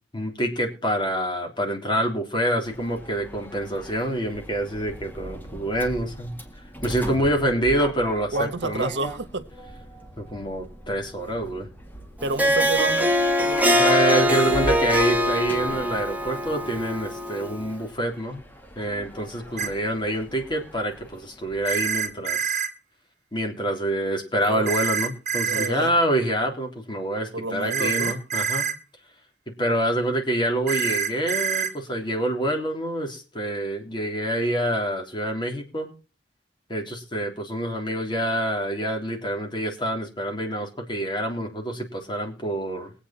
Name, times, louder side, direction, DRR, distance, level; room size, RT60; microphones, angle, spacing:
voice 1, 0.1-6.3 6.8-8.9 10.2-11.7 13.8-18.5 18.8-22.6 23.3-28.7 29.6-35.9 36.7-42.9, right 1 dB, 25° left, 3.2 m, -26 dB
Sliding door, 2.6-22.2, right 1 dB, 10° left, 2.0 m, -40 dB
voice 2, 8.3-9.5 12.2-13.1 13.4-14.5 19.6-19.7 24.4-24.9 25.5-25.9 27.3-28.1, right 3 dB, 75° right, 1.2 m, -30 dB
Harp, 12.2-17.7, equal, 10° right, 1.3 m, -22 dB
sound 1, 19.6-19.7 21.6-22.7 24.7-25.7 27.7-28.7 30.7-31.7, right 7 dB, 45° right, 1.7 m, -26 dB
21.5 x 8.5 x 4.3 m
head